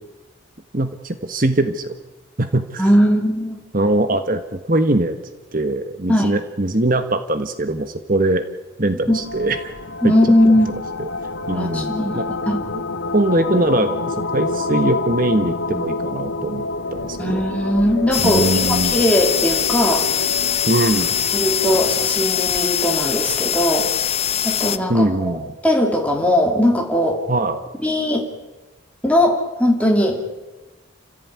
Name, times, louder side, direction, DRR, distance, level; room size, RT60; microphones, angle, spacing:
voice 1, 0.7-1.9 2.4-2.9 3.7-5.2 5.5-8.4 8.8-9.7 10.0-10.1 11.0-11.1 11.5-12.2 13.1-16.6 16.9-17.4 18.2-18.9 20.7-21.2 24.9-25.5 27.3-27.6, right 2 dB, 45° right, 9 dB, 1.4 m, -21 dB
voice 2, 2.8-3.6 6.1-6.3 9.1-9.2 10.0-10.7 11.5-12.6 17.2-20.1 21.3-23.9 24.4-25.4 25.6-27.2 27.8-28.3 29.0-30.3, left 1 dB, 5° left, 0 dB, 2.8 m, -19 dB
sound 1, 9.1-22.2, left 3 dB, 75° left, 1.6 m, -28 dB
sound 2, 18.1-24.8, left 9 dB, 30° left, 0.8 m, -22 dB
29.0 x 15.5 x 9.6 m, 1.1 s
head